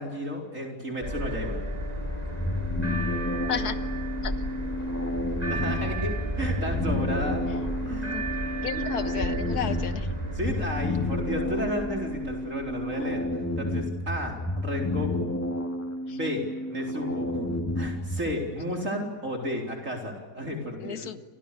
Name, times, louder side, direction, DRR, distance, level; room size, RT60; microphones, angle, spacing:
voice 1, 0.0-1.6 5.5-7.4 7.8-8.2 8.7-8.8 10.1-13.2 13.6-15.4 16.1-17.5 17.7-21.1, equal, 50° right, 1 dB, 4.6 m, -33 dB
sound 1, 1.0-13.4, equal, 25° right, 7.5 m, -33 dB
sound 2, 2.3-18.4, left 1 dB, 10° left, 2.6 m, -31 dB
voice 2, 8.6-10.1 20.8-21.2, left 8 dB, 70° left, 11 dB, 1.9 m, -32 dB
29.5 x 28.0 x 6.9 m, 1.3 s
omnidirectional pair, 1.7 m